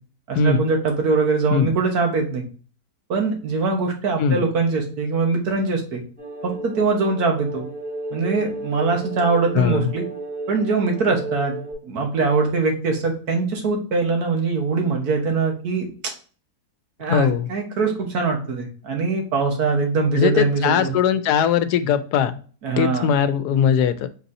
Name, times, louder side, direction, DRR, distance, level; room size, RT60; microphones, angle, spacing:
voice 1, 0.3-2.4 3.1-6.0 6.4-7.6 8.1-10.0 10.5-11.5 11.8-15.9 17.0-20.9 22.6-23.1, right 4 dB, 75° right, 2 dB, 1.7 m, -22 dB
sound 1, 6.2-11.7, right 2 dB, 40° right, 2.4 m, -33 dB
voice 2, 9.5-9.9 17.1-17.5 20.1-22.4 22.8-24.1, left 7 dB, 85° left, 12 dB, 1.2 m, -20 dB
4.5 x 4.0 x 2.6 m, 0.39 s
omnidirectional pair, 1.7 m